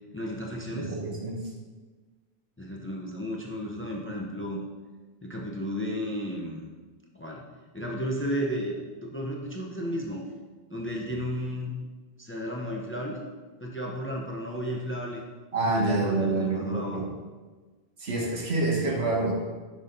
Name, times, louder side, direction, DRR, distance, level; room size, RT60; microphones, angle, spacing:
voice 1, 0.1-1.0 2.6-4.6 5.2-6.7 7.1-7.4 7.7-10.2 10.7-11.7 12.2-13.2 13.6-15.2 15.6-17.0, equal, 15° left, 0 dB, 0.6 m, -33 dB
voice 2, 0.7-1.5 15.5-17.1 18.0-19.3, right 2 dB, 85° right, -2 dB, 1.6 m, -27 dB
6.3 x 5.3 x 3.9 m, 1.3 s
omnidirectional pair, 1.0 m